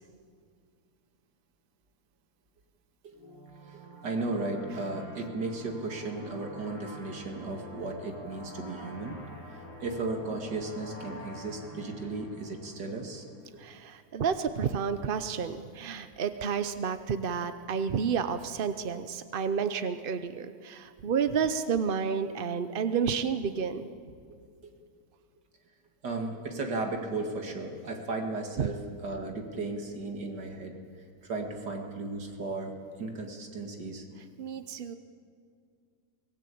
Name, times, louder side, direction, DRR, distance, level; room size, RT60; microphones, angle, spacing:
sound 1, 3.1-13.5, equal, 15° right, 5.9 m, -47 dB
voice 1, 3.7-9.2 9.8-13.2 24.6-24.7 26.0-30.7 31.2-34.1, right 3 dB, 85° right, 3 dB, 2.7 m, -35 dB
voice 2, 13.6-23.9 28.6-28.7 34.4-34.9, right 6 dB, 55° right, 10 dB, 0.6 m, -30 dB
24.0 x 18.0 x 8.5 m, 2.2 s
omnidirectional pair, 1.8 m